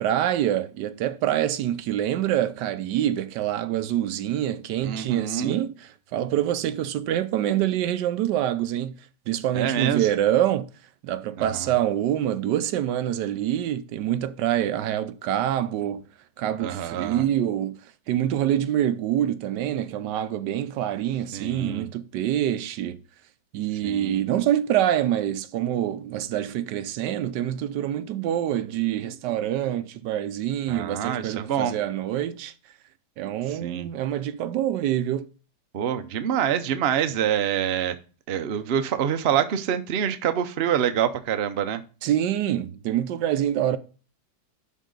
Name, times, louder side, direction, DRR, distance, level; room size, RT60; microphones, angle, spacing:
voice 1, 0.0-9.0 9.3-10.7 11.0-16.0 16.4-17.8 18.1-23.0 23.5-32.5 33.2-35.3 42.0-43.8, right 11 dB, 85° right, 1.3 m, -26 dB
voice 2, 4.8-5.6 9.5-10.1 11.4-11.7 16.6-17.3 21.3-21.9 23.8-24.3 30.7-31.8 33.5-33.9 35.7-38.0 38.3-41.8, right 9 dB, 55° right, 0.7 m, -26 dB
11.0 x 3.7 x 3.8 m
omnidirectional pair, 1.8 m